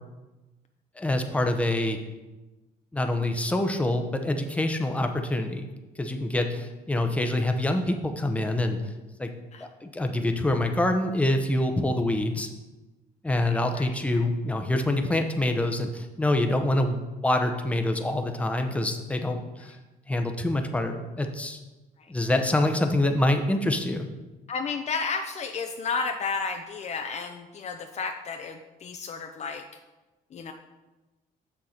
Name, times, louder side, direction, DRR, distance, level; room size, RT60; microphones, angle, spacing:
voice 1, 1.0-2.0 2.9-5.7 6.0-8.8 9.2-9.3 9.6-12.5 13.2-19.8 20.1-21.6 22.1-24.1, left 1 dB, 10° left, 5 dB, 0.7 m, -26 dB
voice 2, 13.5-13.9 14.1-14.2 24.5-29.6 30.3-30.5, left 4 dB, 40° left, 5 dB, 0.6 m, -32 dB
6.6 x 6.3 x 4.3 m, 1.1 s
cardioid pair, 110°, 17 cm